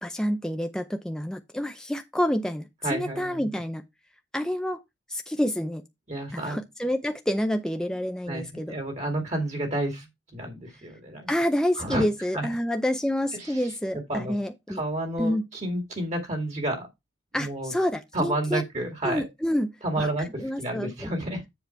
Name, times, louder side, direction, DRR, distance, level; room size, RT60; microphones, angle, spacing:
voice 1, 0.0-3.8 4.3-4.8 5.1-5.8 6.3-8.7 11.3-14.8 15.2-15.5 17.3-18.6 19.0-20.1 20.4-21.1, equal, 5° left, 0.5 m, -28 dB
voice 2, 2.8-3.5 6.1-6.6 8.3-10.1 10.3-11.3 11.8-12.1 12.3-12.5 13.3-13.7 14.1-14.3 14.7-16.9 17.4-17.7 18.1-19.3 19.8-21.4, right 1 dB, 40° right, 2.1 m, -30 dB
7.4 x 5.1 x 4.5 m
head